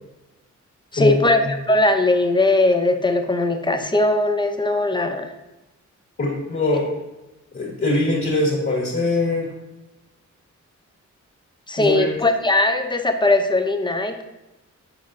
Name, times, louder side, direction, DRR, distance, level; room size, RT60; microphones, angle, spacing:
voice 1, 0.9-1.4 1.7-5.3 11.7-14.2, left 2 dB, 15° left, 6 dB, 0.5 m, -19 dB
voice 2, 6.2-6.8 7.5-9.5 11.8-12.1, left 2 dB, 45° left, -4 dB, 1.4 m, -21 dB
7.2 x 5.1 x 2.5 m, 1.0 s
wide cardioid pair, 135°, 30 cm